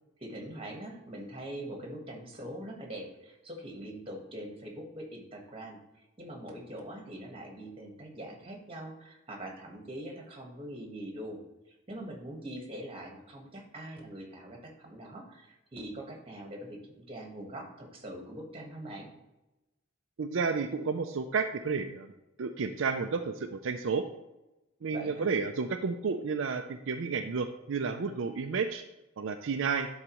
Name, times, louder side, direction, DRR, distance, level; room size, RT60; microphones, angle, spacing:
voice 1, 0.2-11.4 11.7-16.8 17.1-19.1 24.9-25.3, right 1 dB, 30° right, 1 dB, 1.5 m, -43 dB
voice 2, 20.2-22.1 22.4-24.0 24.8-28.8 29.2-29.9, right 5 dB, 70° right, 5 dB, 0.5 m, -31 dB
11.0 x 4.0 x 3.1 m, 0.99 s
head